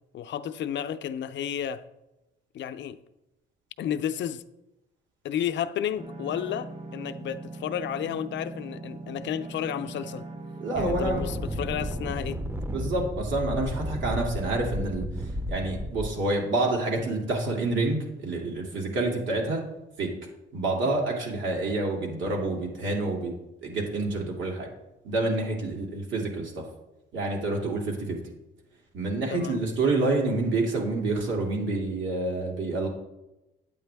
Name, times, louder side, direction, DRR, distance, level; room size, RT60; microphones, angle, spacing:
voice 1, 0.1-1.8 2.5-3.0 3.8-4.4 5.2-10.3 10.8-12.4 29.3-29.6, left 9 dB, 65° left, 0.5 m, -32 dB
sound 1, 6.0-12.1, right 2 dB, 35° right, 1.3 m, -41 dB
voice 2, 10.6-11.2 12.7-19.6 20.0-20.1 20.5-23.3 23.6-24.7 25.0-26.6 27.1-28.2 28.9-32.9, right 2 dB, 75° right, 2.7 m, -28 dB
sound 2, 10.8-16.1, equal, 10° right, 0.6 m, -33 dB
8.9 x 8.6 x 3.5 m
cardioid pair, 90°, 20 cm